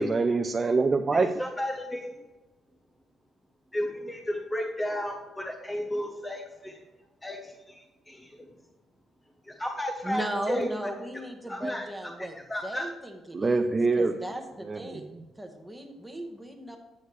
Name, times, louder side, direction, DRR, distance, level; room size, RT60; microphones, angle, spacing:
voice 1, 0.0-1.3 13.3-14.2 14.6-15.2, right 3 dB, 30° right, 5 dB, 0.5 m, -25 dB
voice 2, 1.1-2.1 3.7-6.8 7.2-8.5 9.5-10.9 11.5-11.9 12.2-12.9, left 1 dB, 15° left, 2 dB, 0.9 m, -33 dB
voice 3, 10.0-12.4 12.6-13.6 14.0-15.1 15.4-16.8, right 1 dB, 5° right, 3 dB, 1.2 m, -36 dB
8.5 x 6.4 x 3.2 m, 1.1 s
cardioid pair, 90°, 0 cm